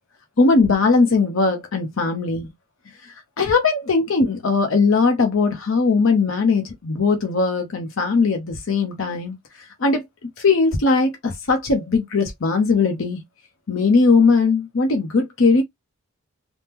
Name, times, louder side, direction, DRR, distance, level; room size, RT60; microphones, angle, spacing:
voice 1, 0.4-2.5 3.4-9.4 9.8-10.0 10.4-13.2 13.7-15.6, left 4 dB, 70° left, 0.7 m, -19 dB
3.5 x 2.1 x 2.9 m
head